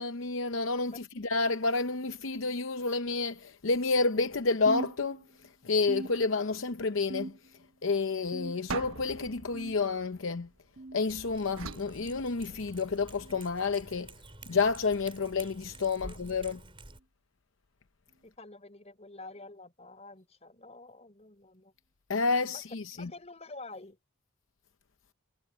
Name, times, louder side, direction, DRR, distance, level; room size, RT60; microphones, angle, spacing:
voice 1, 0.0-5.2 5.6-7.3 7.8-10.5 10.9-14.1 14.5-16.6 22.1-23.1, left 4 dB, 70° left, 0.7 m, -30 dB
sound 1, 4.7-5.5 5.9-6.7 7.1-7.7 8.3-8.9 9.5-9.9 10.8-11.0 12.0-12.2 13.2-13.4 14.4-14.6 15.6-15.8 16.9-17.0 18.1-18.2 19.3-19.4, right 2 dB, 50° right, 1.3 m, -42 dB
sound 2, 8.7-10.9 11.6-12.9, right 4 dB, 80° right, 1.2 m, -42 dB
Cat, 11.1-17.0, right 2 dB, 25° right, 6.2 m, -50 dB
voice 2, 16.0-16.7 18.2-21.7 22.5-22.6 22.9-24.0, left 2 dB, 30° left, 5.0 m, -48 dB
head